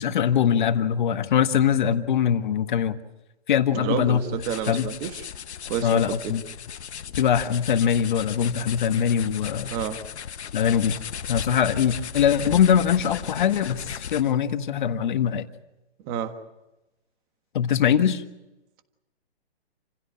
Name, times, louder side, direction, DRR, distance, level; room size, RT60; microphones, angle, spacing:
voice 1, 0.0-3.0 3.5-4.2 4.7-4.9 5.8-6.4 7.2-9.7 10.5-11.0 11.3-15.5 17.5-18.2, left 8 dB, 45° left, 9 dB, 1.6 m, -22 dB
voice 2, 3.7-5.2 5.7-6.3 9.7-10.0 16.0-16.3, right 9 dB, 20° right, 9 dB, 1.5 m, -29 dB
sound 1, 4.0-14.4, left 8 dB, 85° left, 1.1 m, -36 dB
28.5 x 16.5 x 8.7 m, 1.0 s
hypercardioid pair, 160°, 33 cm